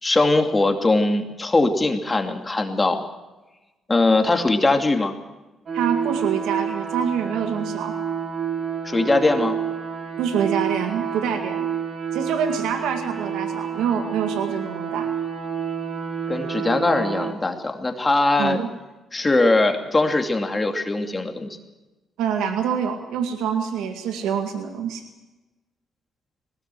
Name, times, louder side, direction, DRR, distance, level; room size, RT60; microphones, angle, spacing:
voice 1, 0.0-3.0 3.9-5.2 8.8-9.6 16.3-18.6 19.1-21.5, left 2 dB, 20° left, 4 dB, 2.6 m, -21 dB
sound 1, 5.7-17.3, right 7 dB, 50° right, 4.1 m, -29 dB
voice 2, 5.7-8.0 10.2-11.7 12.1-15.1 18.4-18.7 22.2-25.0, right 7 dB, 90° right, 5 dB, 2.1 m, -26 dB
20.5 x 18.0 x 7.8 m, 1.1 s
cardioid pair, 90°, 0 cm